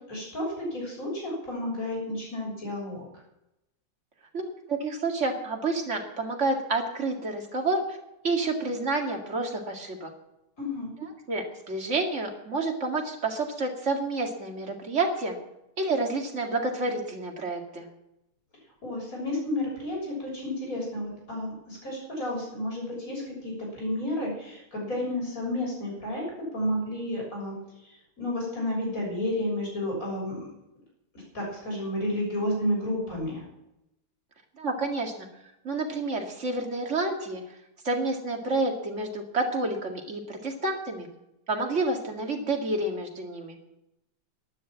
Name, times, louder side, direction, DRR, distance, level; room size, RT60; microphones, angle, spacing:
voice 1, 0.1-3.0 10.6-10.9 18.8-26.2 26.5-27.5 27.8-30.5 31.3-33.4, left 1 dB, 40° left, -2 dB, 7.2 m, -31 dB
voice 2, 4.3-8.0 8.2-10.1 11.3-15.4 15.8-17.9 34.6-35.3 35.6-37.4 37.8-41.1 41.5-43.6, right 2 dB, 35° right, 2 dB, 2.3 m, -29 dB
12.0 x 11.0 x 7.4 m, 0.87 s
omnidirectional pair, 2.3 m